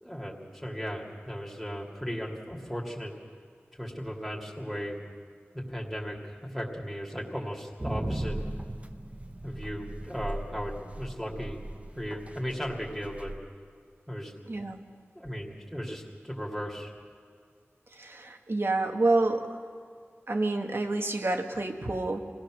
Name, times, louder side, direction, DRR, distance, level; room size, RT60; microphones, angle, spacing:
voice 1, 0.0-3.1 3.8-5.0 5.5-8.4 9.4-11.6 11.9-13.3 14.1-14.3 15.1-16.9, equal, ahead, -2 dB, 2.8 m, -36 dB
sound 1, 7.8-13.4, right 1 dB, 30° right, 1.0 m, -38 dB
voice 2, 14.5-14.8 18.0-19.5 20.3-22.2, right 2 dB, 60° right, 3 dB, 1.7 m, -28 dB
26.0 x 17.5 x 6.4 m, 2.1 s
wide cardioid pair, 60°, 5 cm